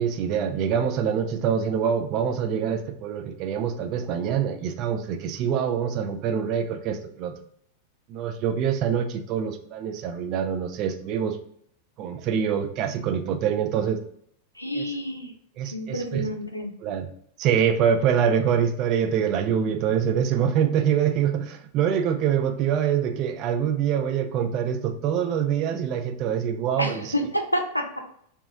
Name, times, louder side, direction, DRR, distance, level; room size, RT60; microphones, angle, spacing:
voice 1, 0.0-7.4 8.1-11.4 12.0-14.0 14.7-14.9 15.6-16.3 16.8-17.1 17.4-27.1, right 8 dB, 40° right, 7 dB, 0.4 m, -25 dB
voice 2, 14.5-15.3 15.7-16.7 26.8-28.0, equal, 85° left, 4 dB, 0.5 m, -28 dB
2.9 x 2.3 x 3.6 m, 0.66 s
figure-of-eight pair, 90°, 0 cm